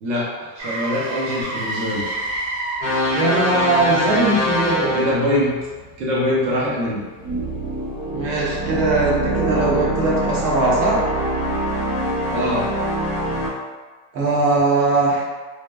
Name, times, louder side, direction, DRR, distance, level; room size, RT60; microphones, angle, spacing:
voice 1, 0.0-2.1 4.9-5.5 6.0-7.0 12.3-12.7, left 1 dB, 35° right, -5 dB, 0.6 m, -23 dB
Motor vehicle (road), 0.6-8.5 12.8-13.0, right 2 dB, 90° right, 1.3 m, -33 dB
sound 1, 2.8-5.5 7.2-13.5, equal, 15° left, 0.4 m, -23 dB
voice 2, 3.1-5.0 8.1-11.0 14.1-15.2, right 2 dB, 70° right, -4 dB, 1.1 m, -20 dB
3.2 x 2.1 x 2.2 m, 1.3 s
supercardioid pair, 170°, 49 cm